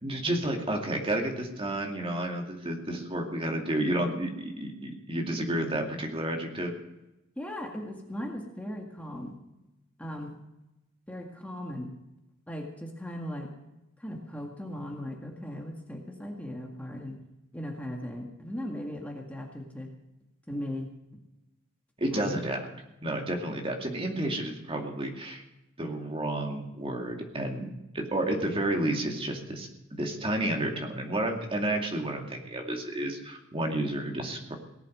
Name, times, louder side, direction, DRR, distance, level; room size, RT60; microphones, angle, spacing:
voice 1, 0.0-6.7 22.0-22.6 23.0-25.4 25.8-27.7 27.9-29.7 30.0-34.5, right 1 dB, 25° right, 2 dB, 2.4 m, -31 dB
voice 2, 7.4-9.3 10.0-10.4 11.1-11.9 12.5-13.5 14.0-17.2 17.5-19.9 20.5-20.9 22.1-22.4, left 1 dB, 5° left, 0 dB, 2.0 m, -38 dB
18.5 x 8.4 x 7.8 m, 0.94 s
head